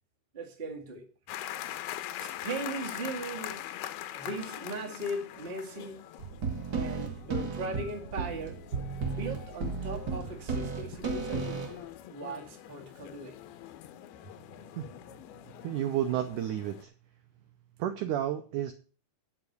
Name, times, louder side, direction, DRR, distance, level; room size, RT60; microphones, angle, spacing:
voice 1, 0.3-1.1 2.2-3.7 4.1-6.0 6.7-8.6 9.1-11.7 12.1-13.4, right 2 dB, 30° right, 1.0 m, -38 dB
sound 1, 1.3-16.8, left 12 dB, 80° left, 2.7 m, -43 dB
sound 2, 6.2-11.8, right 4 dB, 55° right, 1.1 m, -34 dB
voice 2, 15.6-16.9 17.8-18.7, right 11 dB, 85° right, 1.8 m, -31 dB
10.0 x 5.9 x 7.9 m
omnidirectional pair, 4.7 m